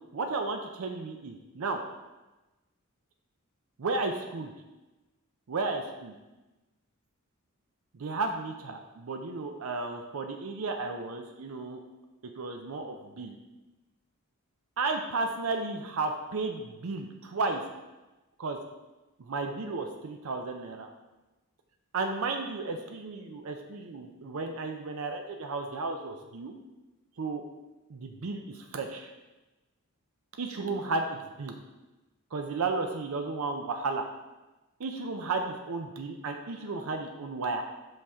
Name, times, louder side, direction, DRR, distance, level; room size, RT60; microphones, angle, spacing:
voice 1, 0.1-1.8 3.8-4.5 5.5-6.1 7.9-11.8 12.4-13.4 14.8-17.6 18.4-18.6 19.2-20.9 21.9-26.5 27.2-27.4 27.9-29.1 30.4-31.6 32.3-34.1 34.8-37.7, right 3 dB, 70° right, 4 dB, 0.5 m, -33 dB
5.6 x 5.3 x 3.6 m, 1.1 s
head